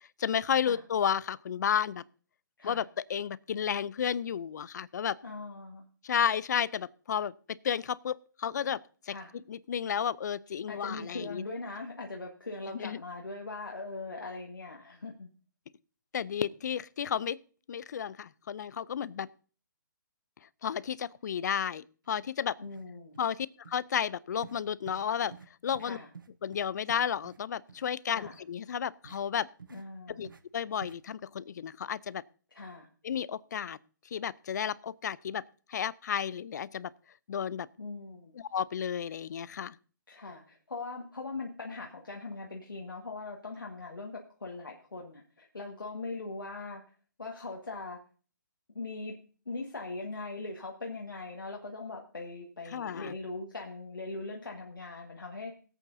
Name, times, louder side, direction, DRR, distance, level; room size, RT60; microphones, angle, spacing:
voice 1, 0.2-2.0 2.6-5.2 6.0-8.8 9.1-11.4 12.7-13.0 16.1-17.4 17.7-19.3 20.6-22.6 23.2-25.3 25.6-26.0 26.4-29.5 30.2-32.2 33.0-33.8 34.1-35.4 35.7-36.9 37.3-37.7 38.4-39.8 52.7-53.1, left 8 dB, 60° left, 0.5 m, -32 dB
voice 2, 5.2-5.8 9.1-9.3 10.7-15.3 22.6-23.2 25.8-26.1 28.1-28.3 29.7-30.3 32.5-32.9 37.8-38.3 40.1-46.8 47.2-48.0 48.7-49.1 49.4-55.6, left 3 dB, 90° left, 1.6 m, -40 dB
sound 1, 22.2-22.3 22.6-22.9 23.1-23.4 23.6-23.8 24.4-24.6 24.9-25.0 25.3-25.5 25.7-25.9 26.1-27.4 27.7-27.8 28.2-28.4 29.0-29.2 29.6-29.8 30.2-30.4 30.8-31.0, right 5 dB, 85° right, 1.0 m, -50 dB
21.0 x 8.4 x 2.7 m
hypercardioid pair, 145°, 11 cm